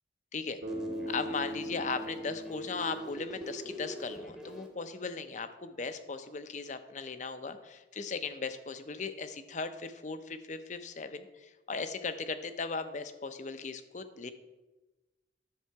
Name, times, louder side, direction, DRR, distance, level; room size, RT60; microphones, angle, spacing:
Bass guitar, 0.6-4.6, equal, 80° right, 2.1 m, -41 dB
sound 1, 0.7-4.7, right 1 dB, 5° right, 0.9 m, -45 dB
voice 1, 1.1-14.3, left 4 dB, 40° left, 10 dB, 0.6 m, -38 dB
10.5 x 6.8 x 4.6 m, 1.1 s
head